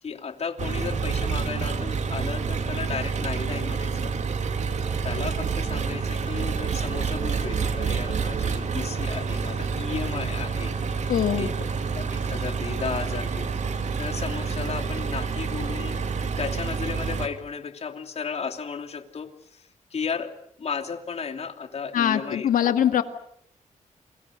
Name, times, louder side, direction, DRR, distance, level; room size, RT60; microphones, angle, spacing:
voice 1, 0.0-4.1 5.0-10.8 11.4-11.5 11.9-13.5 14.0-16.0 16.4-19.6 19.9-22.8, left 6 dB, 50° left, 7 dB, 2.9 m, -34 dB
Engine, 0.6-17.3, right 5 dB, 60° right, 2.8 m, -28 dB
voice 2, 11.1-11.5 21.9-23.0, left 10 dB, 85° left, 9 dB, 2.1 m, -22 dB
29.0 x 24.0 x 6.7 m, 0.70 s
cardioid pair, 95°, 14 cm